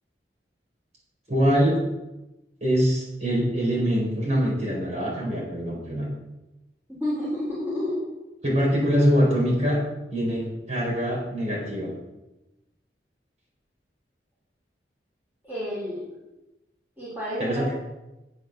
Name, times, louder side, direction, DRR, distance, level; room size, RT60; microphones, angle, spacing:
voice 1, 1.3-1.8 2.6-6.1 8.4-9.8 10.1-11.9 17.4-17.7, equal, 40° right, -4 dB, 4.5 m, -23 dB
voice 2, 6.9-8.1 15.4-16.0 17.0-17.9, left 1 dB, 10° right, -8 dB, 3.5 m, -30 dB
9.7 x 8.1 x 6.6 m, 1.0 s
head